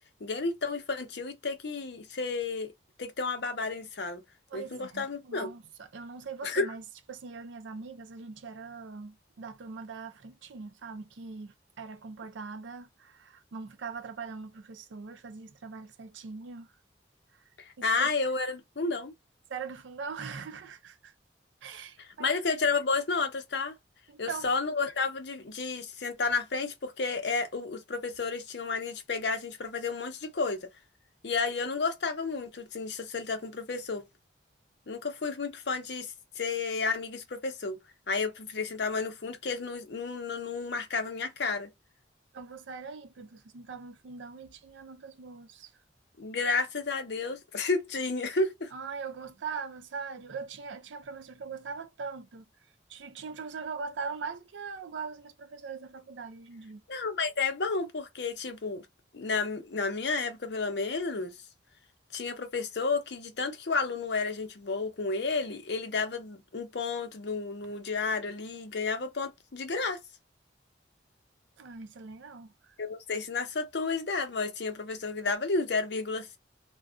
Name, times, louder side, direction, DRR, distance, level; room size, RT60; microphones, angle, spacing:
voice 1, 0.2-2.7 3.0-4.2 4.5-5.5 6.4-6.7 17.8-19.1 22.2-23.8 24.2-30.7 31.2-34.0 34.9-37.8 38.1-41.7 46.2-48.7 56.9-58.9 59.1-61.3 62.1-70.0 72.8-76.4, left 4 dB, 70° left, 0.7 m, -31 dB
voice 2, 4.5-6.8 7.1-16.7 17.8-18.1 19.5-21.1 21.6-22.3 24.1-24.5 42.3-45.7 48.7-52.4 52.9-56.8 71.6-72.8, right 5 dB, 90° right, 0.5 m, -41 dB
2.5 x 2.3 x 2.3 m
head